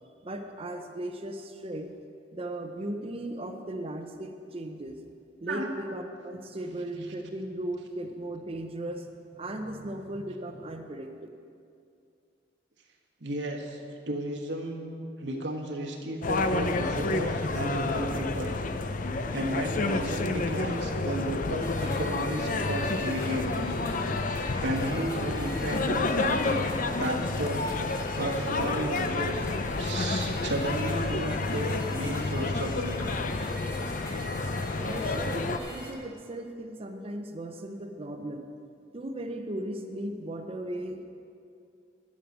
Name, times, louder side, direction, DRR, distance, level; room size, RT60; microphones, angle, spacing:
voice 1, 0.2-1.9 2.3-5.0 5.4-11.1 34.8-38.5 38.9-41.0, right 1 dB, 35° right, 5 dB, 0.7 m, -37 dB
voice 2, 13.2-13.8 14.1-18.6 19.3-23.8 24.2-26.7 27.0-27.6 28.1-29.5 29.8-33.2, right 1 dB, 80° right, 2 dB, 1.4 m, -33 dB
sound 1, 16.2-35.6, left 3 dB, 50° left, 0.6 m, -30 dB
sound 2, 21.6-35.9, equal, 15° left, 1.8 m, -44 dB
11.5 x 6.6 x 8.0 m, 2.4 s
head